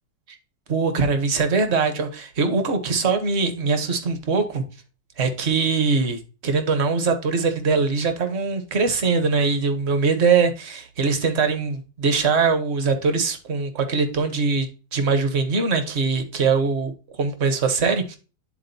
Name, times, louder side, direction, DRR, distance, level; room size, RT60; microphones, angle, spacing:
voice 1, 0.7-4.6 5.2-16.9 17.2-18.2, right 4 dB, 45° right, 0.9 m, -22 dB
11.0 x 3.9 x 2.6 m
omnidirectional pair, 1.9 m